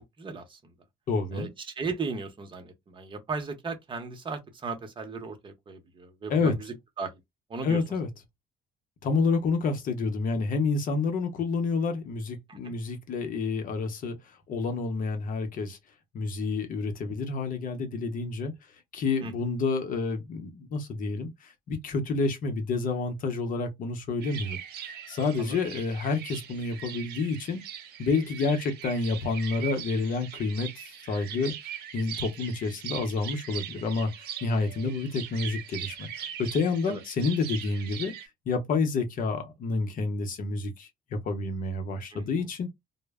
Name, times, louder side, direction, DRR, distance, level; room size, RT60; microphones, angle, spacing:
voice 1, 0.2-0.6 1.3-7.2 7.5-7.8 12.5-12.8 19.2-19.3 25.4-25.6 36.9-37.0 42.1-42.5, right 4 dB, 30° right, 0.8 m, -36 dB
voice 2, 1.1-1.5 6.3-6.5 7.6-8.1 9.0-14.2 14.5-15.8 16.1-18.5 18.9-27.6 28.0-38.1 38.5-42.7, left 4 dB, 55° left, 0.7 m, -29 dB
sound 1, 24.2-38.3, right 9 dB, 70° right, 0.7 m, -41 dB
2.0 x 2.0 x 3.4 m
cardioid pair, 110°, 17 cm